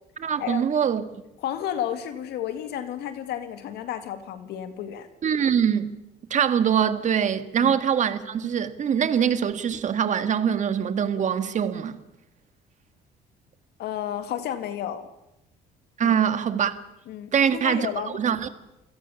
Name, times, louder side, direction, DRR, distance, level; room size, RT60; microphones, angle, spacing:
voice 1, 0.2-1.0 5.2-5.9 6.3-12.0 16.0-16.8 17.3-17.9 18.1-18.5, right 8 dB, 45° right, 1.9 m, -23 dB
voice 2, 1.4-5.1 7.6-7.7 13.8-15.1 16.0-16.2 17.1-18.2, left 10 dB, 75° left, 2.0 m, -32 dB
28.5 x 17.0 x 7.1 m
cardioid pair, 110°, 17 cm